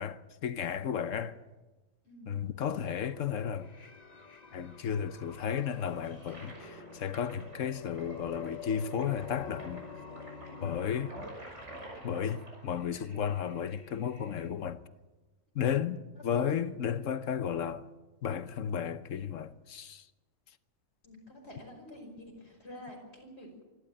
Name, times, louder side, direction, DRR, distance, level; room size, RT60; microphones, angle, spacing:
voice 1, 0.0-1.4 2.3-3.7 4.5-9.8 10.6-11.1 12.0-14.8 15.5-17.9 18.2-20.0, left 8 dB, 70° left, 1.2 m, -33 dB
voice 2, 2.0-2.4 16.3-16.7 21.0-23.6, left 1 dB, 50° left, 5.8 m, -48 dB
sound 1, 2.9-11.2, left 6 dB, 35° left, 1.1 m, -48 dB
Toilet flush, 5.4-14.5, right 1 dB, 60° right, 6.0 m, -50 dB
24.5 x 13.0 x 9.1 m
omnidirectional pair, 1.4 m